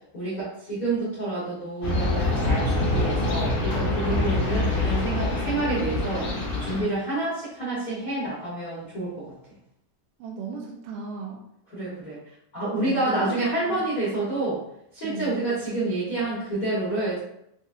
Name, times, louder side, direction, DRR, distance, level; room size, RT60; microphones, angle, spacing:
voice 1, 0.1-6.3 6.6-9.2 11.7-12.2 12.5-14.6 14.9-17.2, right 2 dB, 80° left, -9 dB, 0.7 m, -28 dB
sound 1, 1.8-6.8, left 2 dB, 55° left, 1.7 m, -25 dB
sound 2, 1.9-6.7, right 3 dB, 60° right, 0.7 m, -34 dB
voice 2, 10.2-11.4 12.7-13.9 15.0-15.5, right 5 dB, 80° right, 0 dB, 2.1 m, -36 dB
6.2 x 2.7 x 2.5 m, 0.76 s
omnidirectional pair, 4.1 m